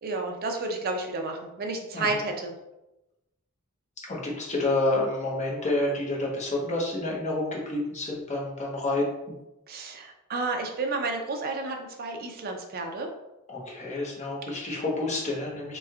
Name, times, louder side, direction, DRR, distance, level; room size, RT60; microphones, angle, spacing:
voice 1, 0.0-2.5 9.7-13.1, right 3 dB, 45° right, 3 dB, 0.5 m, -31 dB
voice 2, 4.1-9.1 13.5-15.8, left 2 dB, 35° left, -3 dB, 0.8 m, -29 dB
3.3 x 3.1 x 2.3 m, 0.95 s
head